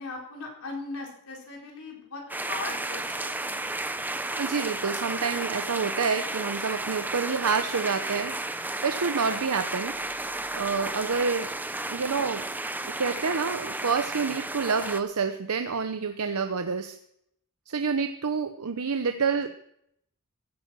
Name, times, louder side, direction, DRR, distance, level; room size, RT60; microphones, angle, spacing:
voice 1, 0.0-3.7, left 2 dB, 75° left, -1 dB, 4.3 m, -39 dB
sound 1, 2.3-15.0, right 2 dB, 10° right, 0.6 m, -33 dB
voice 2, 4.4-10.1 10.5-11.5 11.9-12.5 12.9-17.0 17.7-19.5, right 5 dB, 85° right, 8 dB, 0.8 m, -28 dB
16.0 x 9.0 x 6.2 m, 0.73 s
head